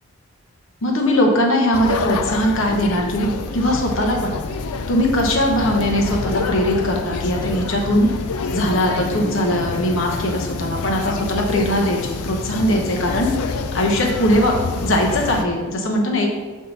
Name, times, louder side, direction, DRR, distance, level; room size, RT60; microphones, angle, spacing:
voice 1, 0.8-4.4 4.9-8.1 8.5-13.3 13.7-16.3, equal, 60° left, 1 dB, 1.0 m, -20 dB
sound 1, 1.7-15.4, left 4 dB, 85° left, 0.5 m, -27 dB
7.4 x 3.7 x 4.0 m, 1.4 s
head